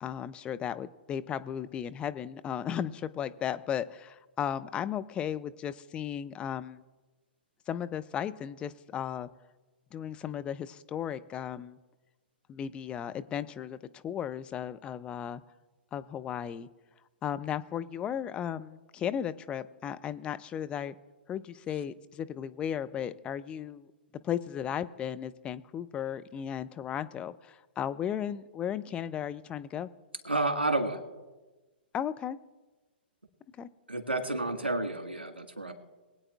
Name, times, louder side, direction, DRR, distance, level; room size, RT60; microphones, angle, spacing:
voice 1, 0.0-6.8 7.7-9.3 9.9-11.8 12.5-15.4 15.9-16.7 17.2-20.9 21.3-23.9 24.2-29.9 31.9-32.4 33.6-33.7, left 9 dB, 20° left, 12 dB, 0.3 m, -35 dB
voice 2, 30.2-31.0 33.9-35.7, right 2 dB, 80° right, 4 dB, 1.6 m, -30 dB
23.0 x 8.8 x 2.4 m, 1.2 s
figure-of-eight pair, 110°, 6 cm